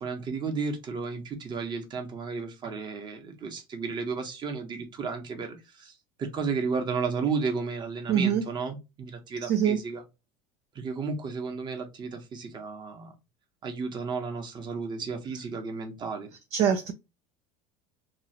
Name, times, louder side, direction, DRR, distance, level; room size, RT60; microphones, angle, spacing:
voice 1, 0.0-10.0 10.7-13.1 13.6-16.3, right 5 dB, 30° right, 1.0 m, -33 dB
voice 2, 8.1-8.4 9.4-9.8 16.5-16.9, right 8 dB, 50° right, 0.5 m, -24 dB
3.0 x 2.5 x 2.8 m
supercardioid pair, 120°, 14 cm